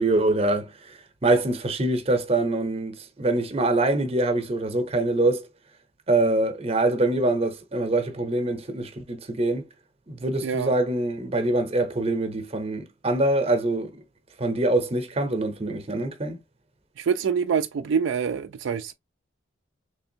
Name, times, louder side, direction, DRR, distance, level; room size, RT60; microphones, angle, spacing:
voice 1, 0.0-5.5 6.1-9.6 10.1-14.0 14.4-16.4, right 2 dB, 30° right, 0.7 m, -24 dB
voice 2, 10.4-10.8 17.0-18.9, right 6 dB, 70° right, 0.3 m, -25 dB
3.4 x 3.3 x 2.7 m
head